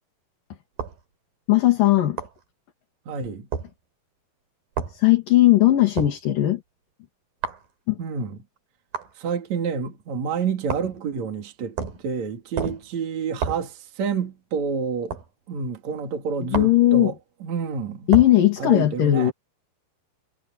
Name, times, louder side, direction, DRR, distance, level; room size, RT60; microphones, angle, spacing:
sound 1, 0.8-1.0 2.2-2.4 3.5-3.7 4.8-5.0 6.0-6.2 7.4-7.7 8.9-9.1 10.7-11.0 11.8-12.1 12.6-12.9 13.4-13.7 15.1-15.3 16.5-16.8 18.1-18.4, right 6 dB, 70° right, 5.2 m, -29 dB
voice 1, 1.5-2.2 4.9-6.6 7.9-8.0 16.5-17.1 18.1-19.3, left 15 dB, 65° left, 4.1 m, -18 dB
voice 2, 3.1-3.5 8.0-8.4 9.2-11.8 12.0-15.2 15.5-17.1 17.4-18.1 18.6-19.3, right 5 dB, 50° right, 3.7 m, -28 dB
omnidirectional pair, 4.3 m